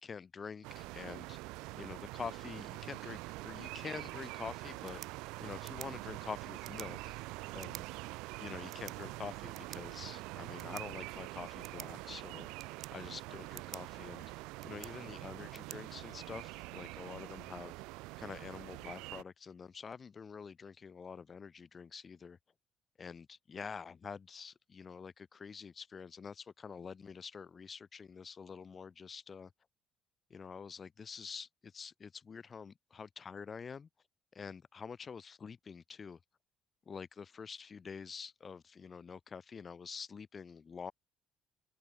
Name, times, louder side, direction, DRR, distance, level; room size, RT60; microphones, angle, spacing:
voice 1, 0.0-1.4 1.8-5.0 5.4-7.2 7.5-7.9 8.4-12.5 12.9-14.3 14.6-17.7 18.2-22.4 23.0-29.5 30.3-33.9 34.3-36.2 36.9-40.9, left 6 dB, 40° left, 1.0 m, -47 dB
sound 1, 0.6-19.2, right 23 dB, 85° right, 0.4 m, -45 dB
sound 2, 4.7-16.7, right 11 dB, 65° right, 2.2 m, -55 dB
open air
supercardioid pair, 85°, 0 cm